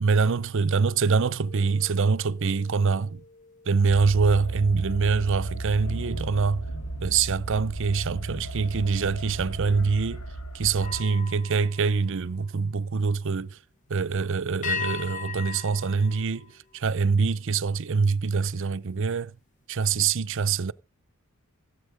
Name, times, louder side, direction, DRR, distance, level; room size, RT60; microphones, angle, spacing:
voice 1, 0.0-3.2 3.7-6.7 7.0-10.2 10.5-13.6 13.9-19.3 19.7-20.7, right 5 dB, 60° right, 0.6 m, -24 dB
sound 1, 1.4-7.0 7.5-7.8 10.7-12.9 14.6-17.2, left 6 dB, 35° left, 0.6 m, -40 dB
sound 2, 3.9-11.0, right 2 dB, 80° left, 1.8 m, -35 dB
16.5 x 8.2 x 5.0 m
head